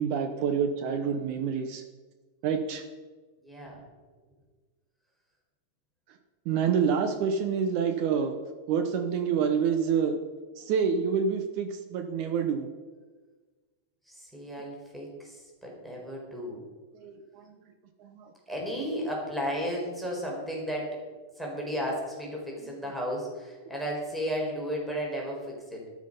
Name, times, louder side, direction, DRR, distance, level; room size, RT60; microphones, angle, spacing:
voice 1, 0.0-1.8 2.4-2.8 6.5-8.3 8.7-10.2 10.6-12.7 16.9-17.5 18.0-18.3, right 6 dB, 75° right, 7 dB, 2.3 m, -27 dB
voice 2, 3.4-3.8 14.1-16.6 18.5-21.0 21.4-25.8, equal, ahead, -2 dB, 4.1 m, -34 dB
13.0 x 12.5 x 5.3 m, 1.4 s
omnidirectional pair, 3.5 m